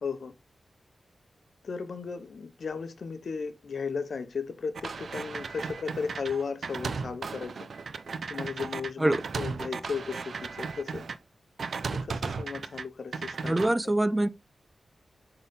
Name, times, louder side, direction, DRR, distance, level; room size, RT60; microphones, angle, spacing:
voice 1, 0.0-0.3 1.6-7.7 8.3-11.0 11.9-13.9, left 5 dB, 65° left, 0.9 m, -35 dB
sound 1, 4.8-11.2 11.6-12.8 13.1-13.7, right 5 dB, 70° right, 0.6 m, -36 dB
voice 2, 13.4-14.3, right 1 dB, 15° right, 0.4 m, -24 dB
8.1 x 3.9 x 3.5 m
wide cardioid pair, 105°, 0 cm